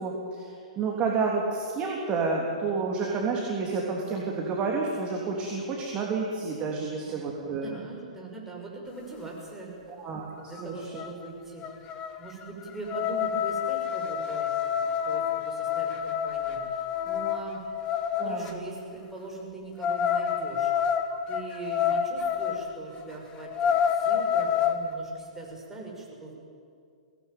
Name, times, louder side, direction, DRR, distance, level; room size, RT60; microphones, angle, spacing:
voice 1, 0.0-7.7 9.9-10.2 10.6-11.0 18.2-18.6, right 4 dB, 25° right, -2 dB, 3.4 m, -30 dB
voice 2, 7.0-9.7 10.3-20.7 21.3-26.3, right 3 dB, 10° right, -2 dB, 6.1 m, -41 dB
sound 1, 10.6-10.7 10.9-11.3 11.6-18.5 19.8-22.6 23.0-23.1 23.4-24.8, left 8 dB, 25° left, 1.6 m, -28 dB
23.0 x 18.5 x 9.4 m, 2.3 s
figure-of-eight pair, 110°, 4 cm